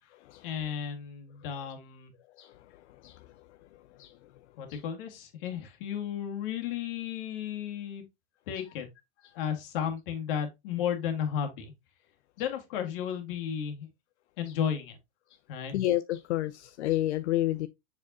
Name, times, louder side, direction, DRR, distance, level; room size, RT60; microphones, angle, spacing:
voice 1, 0.4-2.1 4.6-8.0 8.5-8.9 9.4-11.7 12.4-13.9 14.4-15.0 15.5-15.8, left 8 dB, 50° left, 2.0 m, -33 dB
voice 2, 15.7-17.7, left 14 dB, 80° left, 0.6 m, -29 dB
7.1 x 4.8 x 2.8 m
supercardioid pair, 150°, 33 cm